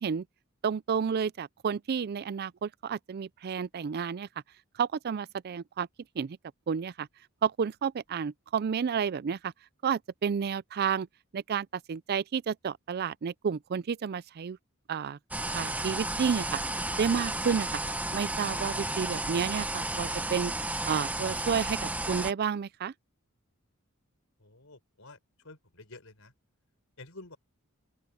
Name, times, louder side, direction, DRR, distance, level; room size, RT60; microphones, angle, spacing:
voice 1, 0.6-4.3 4.8-5.9 6.2-6.4 6.7-7.1 7.4-9.5 9.8-11.1 11.3-14.6 14.9-15.2 15.5-16.6 17.0-17.8 18.1-20.5 20.8-22.9, right 6 dB, 45° right, 0.4 m, -31 dB
sound 1, 15.3-22.3, right 2 dB, 5° right, 0.9 m, -33 dB
voice 2, 24.4-25.2 25.4-26.3 27.0-27.4, left 2 dB, 70° left, 5.6 m, -50 dB
open air
head